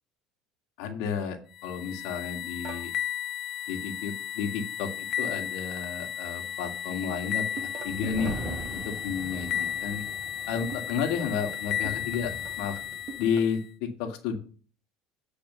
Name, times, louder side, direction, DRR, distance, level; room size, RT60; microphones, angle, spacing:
voice 1, 0.8-2.9 3.7-8.4 8.7-10.1 10.5-12.8 13.2-14.4, left 6 dB, 80° left, 5 dB, 1.9 m, -32 dB
sound 1, 1.5-13.7, left 10 dB, 50° left, 0.6 m, -34 dB
sound 2, 2.6-2.9 5.2-5.6 7.6-8.5 10.7-13.6, right 5 dB, 45° right, 1.6 m, -44 dB
sound 3, 7.8-13.3, right 1 dB, 25° right, 2.4 m, -41 dB
9.2 x 4.9 x 6.8 m, 0.40 s
cardioid pair, 130°, 0 cm